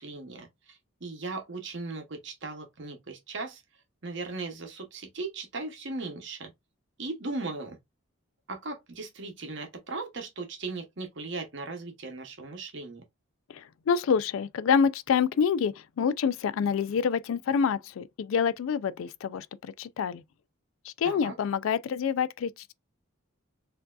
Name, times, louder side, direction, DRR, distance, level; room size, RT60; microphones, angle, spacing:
voice 1, 0.0-3.6 4.0-6.5 7.0-7.8 8.5-13.0 21.0-21.3, right 3 dB, 55° right, 0.8 m, -38 dB
voice 2, 13.5-20.2 20.8-22.7, left 6 dB, 75° left, 0.3 m, -27 dB
4.4 x 2.7 x 2.3 m
head